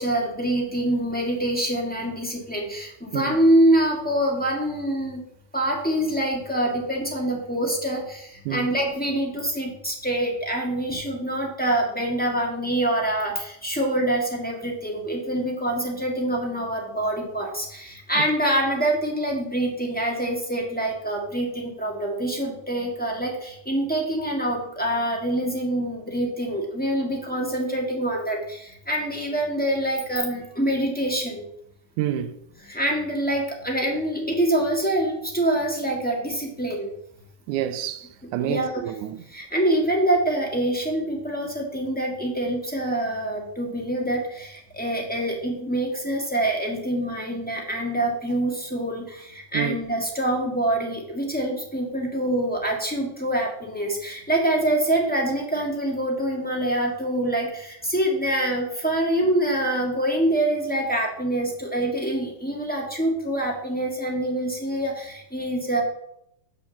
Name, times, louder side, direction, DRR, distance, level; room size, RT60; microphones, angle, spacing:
voice 1, 0.0-5.2 5.5-31.4 32.7-36.9 38.4-38.8 39.3-65.8, right 1 dB, 5° left, 1.0 m, -25 dB
voice 2, 32.0-32.3 37.5-39.2 49.5-49.8, right 11 dB, 85° right, 2.1 m, -28 dB
6.4 x 6.2 x 7.0 m
omnidirectional pair, 3.5 m